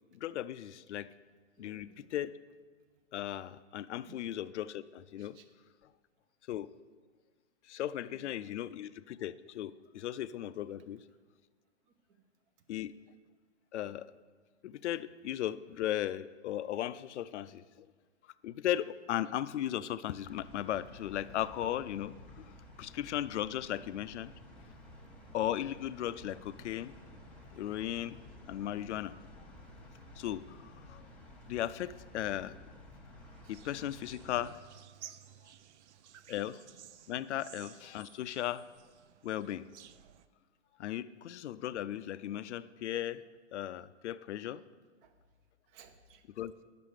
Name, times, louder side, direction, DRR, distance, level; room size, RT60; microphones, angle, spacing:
voice 1, 0.1-1.1 1.6-2.3 3.1-5.4 6.5-6.7 7.7-11.0 12.7-12.9 13.7-14.1 14.6-17.6 18.4-22.4 22.8-24.3 25.3-26.9 27.5-28.2 28.5-29.1 30.2-30.4 30.9-31.0 31.5-32.5 33.5-34.6 36.3-36.6 37.1-38.6 39.2-39.6 40.8-43.2 43.5-44.6 46.4-46.5, left 12 dB, 65° left, 15 dB, 0.5 m, -36 dB
voice 2, 1.6-2.1 4.0-4.2 5.2-5.5 7.8-8.3 11.9-12.2 33.4-33.6 35.0-35.1 35.8-36.1 37.3-37.5 45.0-45.2 45.7-46.2, right 7 dB, 25° right, 8 dB, 0.7 m, -60 dB
sound 1, 20.2-34.5, left 1 dB, 5° left, 1.3 m, -53 dB
sound 2, 33.5-40.3, right 10 dB, 65° right, 0.5 m, -55 dB
10.0 x 6.7 x 4.9 m, 1.5 s
hypercardioid pair, 135°, 37 cm